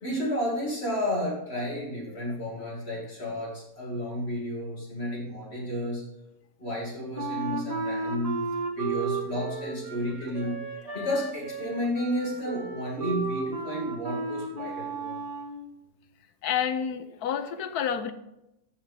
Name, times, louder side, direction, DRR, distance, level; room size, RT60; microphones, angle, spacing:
voice 1, 0.0-6.1 6.6-8.4 8.8-10.6 10.9-15.2, equal, 45° left, -3 dB, 2.3 m, -32 dB
Wind instrument woodwind instrument, 7.1-15.6, right 4 dB, 25° right, 1.4 m, -34 dB
voice 2, 16.4-18.1, left 8 dB, 85° left, 11 dB, 1.3 m, -29 dB
14.5 x 5.6 x 3.4 m, 0.87 s
omnidirectional pair, 1.6 m